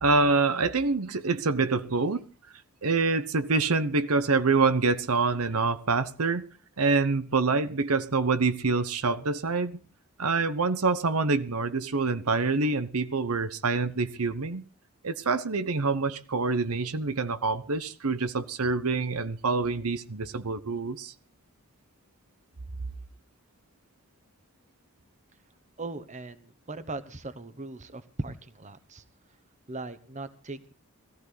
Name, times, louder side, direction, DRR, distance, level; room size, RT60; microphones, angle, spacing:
voice 1, 0.0-2.3 2.8-6.4 6.8-9.8 10.2-14.6 15.0-21.1, right 4 dB, 85° right, 12 dB, 1.0 m, -26 dB
voice 2, 25.8-29.0 29.7-30.7, right 2 dB, 35° right, 12 dB, 1.2 m, -39 dB
18.0 x 15.0 x 4.1 m, 0.36 s
head